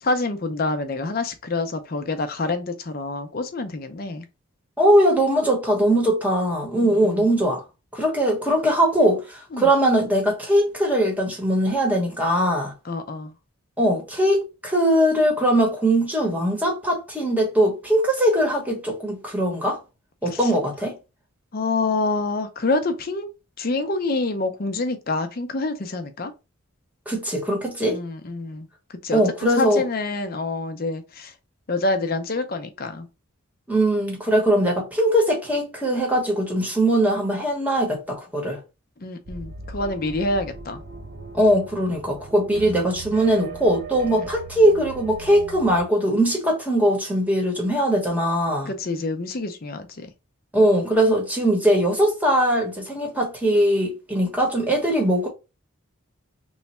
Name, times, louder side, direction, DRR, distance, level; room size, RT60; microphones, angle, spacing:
voice 1, 0.0-4.2 6.8-7.3 9.5-9.7 12.8-13.3 20.3-20.5 21.5-26.3 27.8-31.3 31.7-33.1 39.0-40.8 44.1-44.3 48.7-50.1, left 3 dB, 45° left, 0.5 m, -27 dB
voice 2, 4.8-7.6 7.9-12.7 13.8-19.8 20.2-21.0 27.1-28.0 29.1-29.8 33.7-38.6 41.3-48.7 50.5-55.3, right 1 dB, 5° right, 1.0 m, -21 dB
sound 1, 39.3-45.8, right 4 dB, 40° right, 0.5 m, -39 dB
3.1 x 2.2 x 4.2 m
head